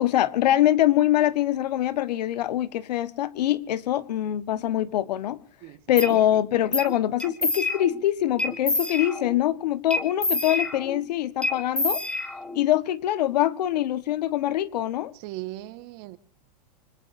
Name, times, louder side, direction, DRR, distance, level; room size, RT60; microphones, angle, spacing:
voice 1, 0.0-5.4 5.9-12.0 12.5-15.1, left 12 dB, 75° left, 1.5 m, -24 dB
sound 1, 6.0-6.1 6.7-6.9 7.2-8.0 8.4-9.4 9.9-11.0 11.4-12.7, left 2 dB, 5° left, 1.7 m, -27 dB
voice 2, 15.1-16.2, right 17 dB, 50° right, 1.7 m, -38 dB
25.0 x 19.5 x 2.7 m
supercardioid pair, 130°, 21 cm